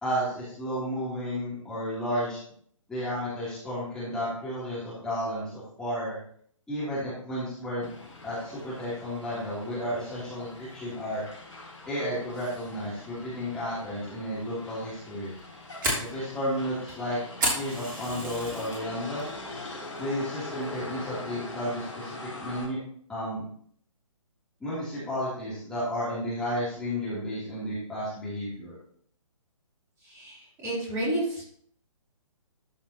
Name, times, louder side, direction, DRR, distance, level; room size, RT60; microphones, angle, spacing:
voice 1, 0.0-2.4 2.9-6.2 6.7-7.9 8.2-11.2 11.9-15.3 16.0-17.2 17.5-19.2 20.0-22.8 23.1-23.4 24.6-28.7, equal, 5° left, -11 dB, 3.2 m, -32 dB
Motor vehicle (road), 7.8-22.7, left 2 dB, 60° left, 3.8 m, -43 dB
Fire, 15.2-18.8 19.2-19.6 20.0-20.1 20.6-21.0, right 1 dB, 35° right, 3.0 m, -31 dB
voice 2, 30.0-31.4, right 1 dB, 15° right, -7 dB, 3.5 m, -31 dB
13.0 x 5.7 x 3.0 m, 0.62 s
figure-of-eight pair, 135°, 17 cm